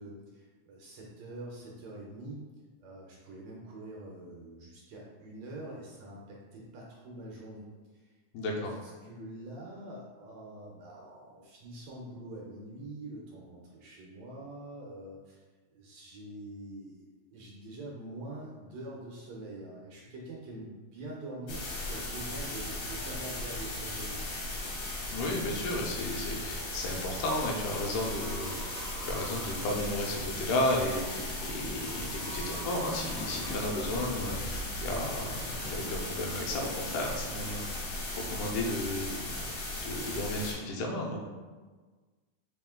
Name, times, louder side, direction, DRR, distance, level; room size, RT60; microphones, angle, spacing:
voice 1, 0.0-2.4 2.8-8.2 8.4-15.4 15.7-24.4, right 1 dB, 75° right, -3 dB, 1.7 m, -45 dB
voice 2, 8.3-8.7 25.1-39.5 39.8-41.3, left 1 dB, 85° left, 0 dB, 2.2 m, -34 dB
sound 1, 21.5-40.5, left 2 dB, 65° left, 1.2 m, -37 dB
sound 2, 25.4-33.9, right 3 dB, 90° right, 1.2 m, -49 dB
4.9 x 3.0 x 3.5 m, 1.4 s
omnidirectional pair, 3.5 m